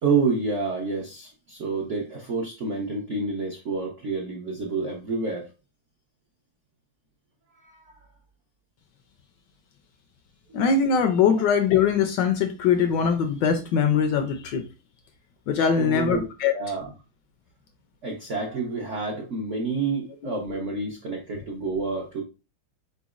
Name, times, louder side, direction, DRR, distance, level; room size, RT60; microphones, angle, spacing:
voice 1, 0.0-5.5 7.6-8.0 15.8-16.9 18.0-22.2, right 4 dB, 70° right, 0.7 m, -29 dB
voice 2, 10.5-14.6 15.5-16.5, left 6 dB, 75° left, 1.1 m, -22 dB
4.3 x 4.0 x 2.4 m
omnidirectional pair, 2.2 m